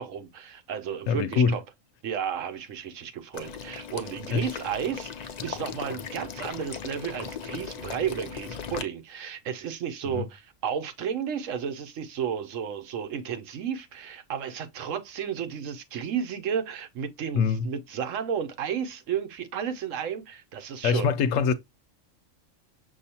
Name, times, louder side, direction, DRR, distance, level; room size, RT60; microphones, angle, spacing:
voice 1, 0.0-1.6 2.0-21.1, right 8 dB, 75° right, 1.1 m, -33 dB
voice 2, 1.1-1.6 4.3-4.5 10.1-10.3 17.3-17.7 20.8-21.5, left 6 dB, 75° left, 1.0 m, -23 dB
Water / Liquid, 3.3-8.8, left 6 dB, 60° left, 0.4 m, -38 dB
6.3 x 2.7 x 2.8 m
omnidirectional pair, 1.4 m